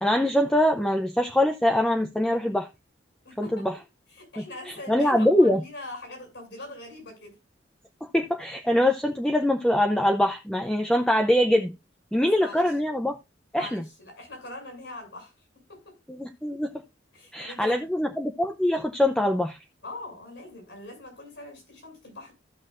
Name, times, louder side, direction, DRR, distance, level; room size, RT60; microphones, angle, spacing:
voice 1, 0.0-2.7 3.4-3.7 4.4-5.6 8.1-11.7 12.1-13.2 13.5-13.8 16.2-16.7 17.3-19.6, left 1 dB, 5° left, 0.6 m, -23 dB
voice 2, 3.2-3.7 4.1-7.3 12.1-12.7 13.5-15.3 15.7-15.9 17.1-17.8 19.8-22.3, left 2 dB, 75° left, 6.9 m, -42 dB
15.0 x 6.2 x 2.5 m
head